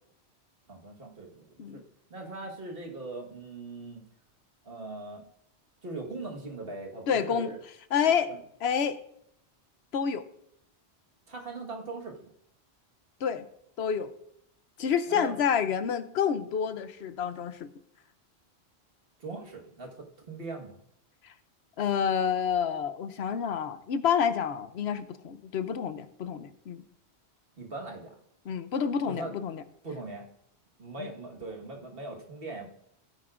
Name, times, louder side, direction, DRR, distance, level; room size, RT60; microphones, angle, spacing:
voice 1, 0.7-1.4 1.7-1.8 2.1-4.0 4.6-5.2 5.8-7.6 8.3-8.4 11.3-12.2 15.1-15.3 19.2-20.8 27.6-28.1 29.0-29.3 29.8-30.2 30.8-32.7, right 3 dB, 60° right, 1 dB, 1.8 m, -40 dB
voice 2, 7.1-7.5 7.9-8.3 8.6-9.0 9.9-10.2 13.2-13.5 13.8-14.1 14.8-17.7 21.8-26.8 28.5-29.6 31.0-31.1, left 7 dB, 75° left, 12 dB, 0.9 m, -28 dB
16.0 x 9.4 x 2.5 m, 0.73 s
omnidirectional pair, 1.1 m